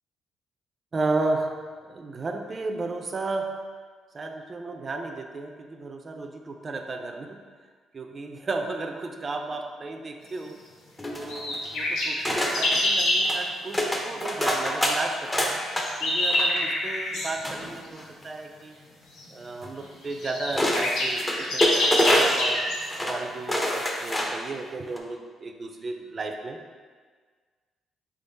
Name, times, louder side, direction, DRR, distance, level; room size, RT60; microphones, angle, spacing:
voice 1, 0.9-3.5 4.1-7.4 7.9-10.6 11.1-15.6 16.0-18.8 19.3-22.7 23.0-26.6, right 3 dB, 35° right, 4 dB, 0.5 m, -33 dB
sound 1, 11.0-11.7 12.3-12.8 13.2-13.4 13.7-15.9 16.2-16.6 17.4-18.2 19.6-19.7 20.5-22.5 22.8-23.2 23.5-24.5 24.9-25.0, equal, 15° left, 0.6 m, -26 dB
sound 2, 11.3-13.3 15.4-17.3 19.2-19.3 19.8-19.9 20.1-22.8, left 1 dB, 80° left, 1.0 m, -26 dB
3.8 x 3.6 x 3.9 m, 1.5 s
cardioid pair, 90°, 0 cm